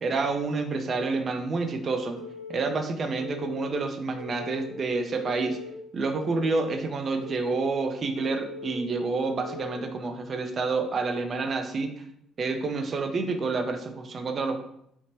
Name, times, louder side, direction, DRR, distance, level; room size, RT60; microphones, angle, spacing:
voice 1, 0.0-2.2 2.5-5.6 5.9-12.0 12.4-14.6, right 3 dB, 45° right, 6 dB, 0.4 m, -28 dB
Telephone, 2.2-2.7 3.2-3.7 4.2-4.7 5.2-5.7 6.2-6.7 7.2-7.7 8.2-8.7 9.2-9.7, left 4 dB, 80° left, 0.7 m, -40 dB
2.9 x 2.1 x 3.0 m, 0.75 s
hypercardioid pair, 60°, 0 cm